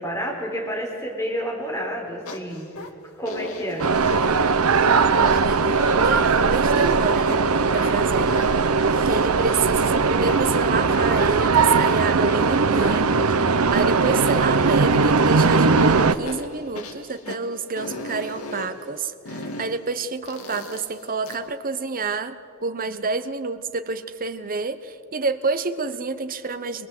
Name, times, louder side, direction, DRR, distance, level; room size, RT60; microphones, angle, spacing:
voice 1, 0.0-2.7 3.2-3.9, equal, 15° left, -1 dB, 4.4 m, -29 dB
sound 1, 2.3-2.9 3.3-4.4 4.8-5.0 5.3-6.2 6.8-7.4 7.8-9.9 10.3-11.9 12.2-14.9 15.3-15.4 15.8-17.4 17.8-18.7 19.3-19.7 20.3-21.4, left 2 dB, 75° left, 2.0 m, -37 dB
sound 2, 3.8-16.1, right 4 dB, 80° right, 0.8 m, -19 dB
voice 2, 5.1-7.3 7.7-8.3 8.8-13.1 13.7-22.4 22.6-26.9, right 4 dB, 40° right, 10 dB, 1.0 m, -28 dB
22.5 x 21.5 x 7.9 m, 2.4 s
head